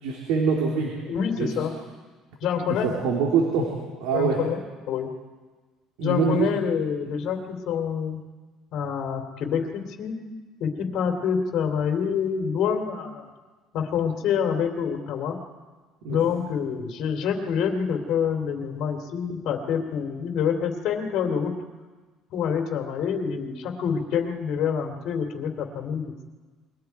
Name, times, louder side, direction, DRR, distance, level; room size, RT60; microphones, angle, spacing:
voice 1, 0.0-0.9 1.4-1.5 2.7-3.7 4.0-4.4 6.0-6.5 16.0-16.2, right 5 dB, 85° right, -1 dB, 3.4 m, -24 dB
voice 2, 1.1-1.7 2.4-2.9 4.1-4.6 4.9-5.1 6.0-8.2 8.7-10.2 10.6-13.3 13.7-15.4 16.1-21.5 22.3-26.1, left 7 dB, 60° left, 3 dB, 3.0 m, -27 dB
28.5 x 22.5 x 4.7 m, 1.4 s
cardioid pair, 130°, 0 cm